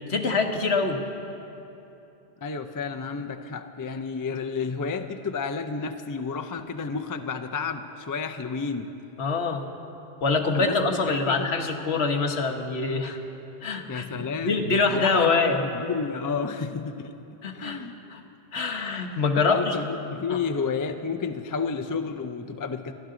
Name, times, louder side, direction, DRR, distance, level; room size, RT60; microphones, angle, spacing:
voice 1, 0.1-1.0 9.2-9.6 10.2-13.2 13.6-15.6 17.4-17.8 18.1-18.2 18.5-19.7 20.3-20.4, left 4 dB, 70° left, 4 dB, 1.4 m, -25 dB
voice 2, 2.4-8.9 10.5-10.8 11.0-11.6 13.9-17.1 17.5-18.0 19.4-22.9, left 5 dB, 30° left, 7 dB, 0.3 m, -31 dB
27.5 x 12.0 x 3.8 m, 3.0 s
omnidirectional pair, 1.1 m